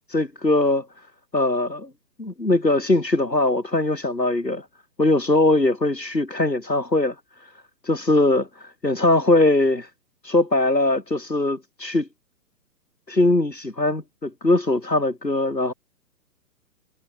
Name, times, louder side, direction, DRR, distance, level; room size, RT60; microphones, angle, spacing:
voice 1, 0.1-0.9 1.3-1.9 2.2-4.6 5.0-7.1 7.4-7.5 7.8-9.9 10.2-12.1 13.1-15.7, left 2 dB, 90° left, 3.1 m, -21 dB
figure-of-eight pair, 130°, 49 cm